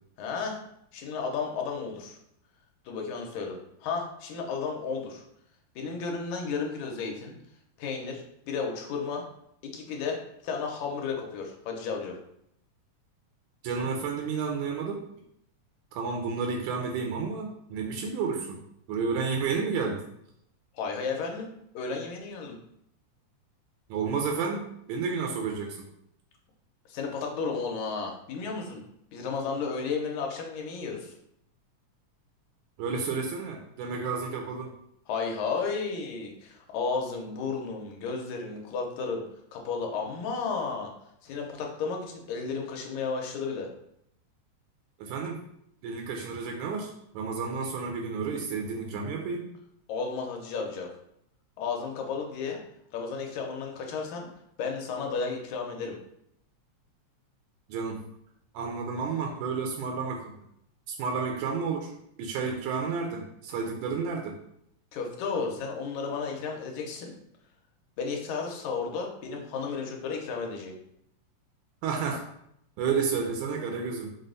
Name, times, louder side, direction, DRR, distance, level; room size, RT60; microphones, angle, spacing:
voice 1, 0.2-0.6 0.9-2.2 2.9-5.2 5.8-7.4 7.8-9.2 9.6-10.2 10.4-12.2 20.7-22.6 26.9-28.8 29.1-31.2 35.1-39.2 39.5-40.9 41.2-43.7 49.9-50.9 51.6-52.6 52.9-54.3 54.6-55.9 64.9-67.1 68.0-70.7, left 5 dB, 85° left, 1 dB, 2.0 m, -33 dB
voice 2, 13.6-15.0 15.9-18.6 18.9-20.0 23.9-25.9 32.8-34.7 45.0-45.4 45.8-49.5 57.7-58.0 58.5-60.4 60.9-61.9 62.2-64.4 71.8-72.2 72.8-74.1, right 5 dB, 85° right, 1 dB, 2.0 m, -31 dB
5.3 x 2.0 x 3.8 m, 0.75 s
omnidirectional pair, 3.3 m